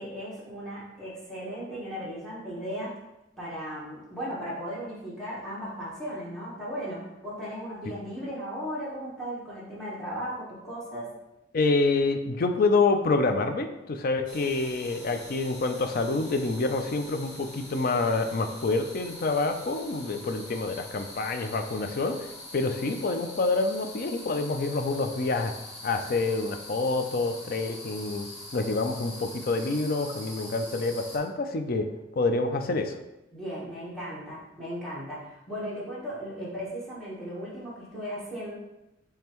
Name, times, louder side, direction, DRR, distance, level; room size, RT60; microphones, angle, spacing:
voice 1, 0.0-3.0 3.4-11.1 33.3-38.6, equal, ahead, -9 dB, 1.2 m, -36 dB
voice 2, 11.5-25.5 25.8-31.9 32.2-33.0, left 3 dB, 45° left, 6 dB, 0.4 m, -27 dB
sound 1, 14.3-31.2, left 2 dB, 65° left, 1.2 m, -44 dB
5.4 x 3.3 x 3.0 m, 0.93 s
head